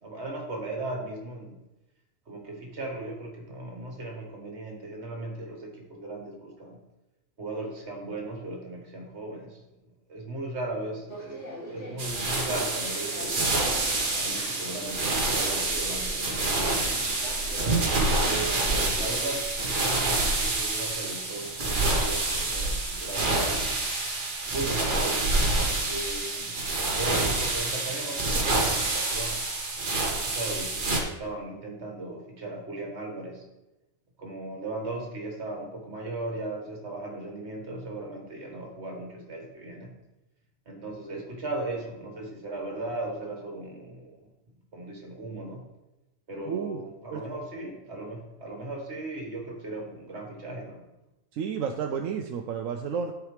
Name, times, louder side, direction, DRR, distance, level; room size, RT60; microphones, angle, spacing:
voice 1, 0.0-1.6 2.3-6.8 7.4-9.7 10.1-13.7 14.2-17.4 18.9-23.7 24.5-25.2 25.8-26.6 26.9-29.4 30.1-33.5 34.2-39.9 40.7-44.3 44.7-45.6 46.3-50.8, right 2 dB, 55° right, 1 dB, 1.8 m, -37 dB
sound 1, 11.1-19.4, right 1 dB, 65° left, 2.3 m, -40 dB
sound 2, 12.0-31.0, right 2 dB, 40° right, 1.2 m, -27 dB
voice 2, 46.5-46.8 47.1-47.2 51.3-53.1, right 7 dB, 80° right, 4 dB, 0.9 m, -31 dB
12.0 x 4.8 x 3.3 m, 0.97 s
omnidirectional pair, 1.4 m